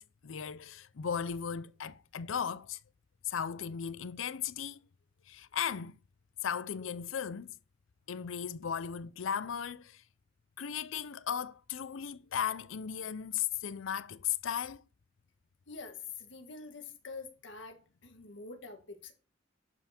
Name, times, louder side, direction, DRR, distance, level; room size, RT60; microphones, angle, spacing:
voice 1, 0.0-2.8 3.2-4.8 5.3-6.0 6.4-7.6 8.1-10.0 10.6-14.8, left 8 dB, 90° left, 0.5 m, -36 dB
voice 2, 15.7-19.1, left 4 dB, 70° left, 1.8 m, -46 dB
11.5 x 5.7 x 4.3 m
head